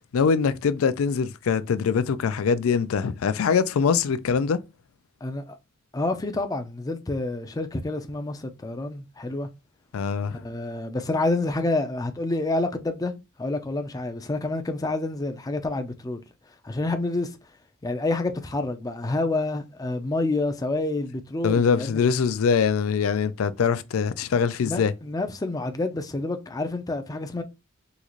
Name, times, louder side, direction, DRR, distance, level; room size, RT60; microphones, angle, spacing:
voice 1, 0.1-4.6 9.9-10.4 21.4-24.9, left 6 dB, 80° left, 0.4 m, -23 dB
voice 2, 5.2-5.6 5.9-9.5 10.4-13.1 13.4-16.2 16.6-17.4 17.8-22.0 24.6-27.4, left 2 dB, 20° left, 0.4 m, -28 dB
3.8 x 2.4 x 3.0 m
head